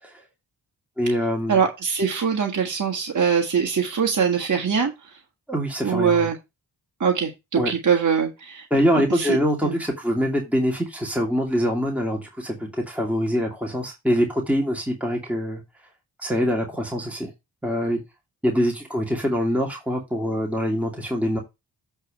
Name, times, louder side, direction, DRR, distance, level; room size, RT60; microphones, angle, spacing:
voice 1, 1.0-1.6 5.5-6.3 7.6-7.7 8.7-15.6 16.2-17.3 17.6-18.0 18.4-21.4, equal, 5° right, 0 dB, 2.6 m, -24 dB
voice 2, 1.5-4.9 5.8-6.4 7.0-8.6 8.9-9.4 9.6-9.8, right 6 dB, 45° right, 1 dB, 1.8 m, -22 dB
8.0 x 3.5 x 6.4 m, 0.23 s
supercardioid pair, 40°, 44 cm